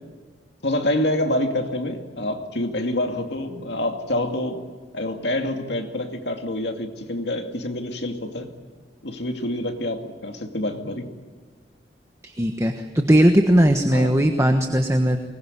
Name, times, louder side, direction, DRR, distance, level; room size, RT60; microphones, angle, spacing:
voice 1, 0.6-4.6 4.9-8.5 9.0-11.1 13.9-14.1, left 1 dB, 65° left, 4 dB, 2.5 m, -27 dB
voice 2, 12.2-15.2, equal, 15° right, 5 dB, 1.3 m, -18 dB
23.5 x 20.5 x 9.9 m, 1.5 s
head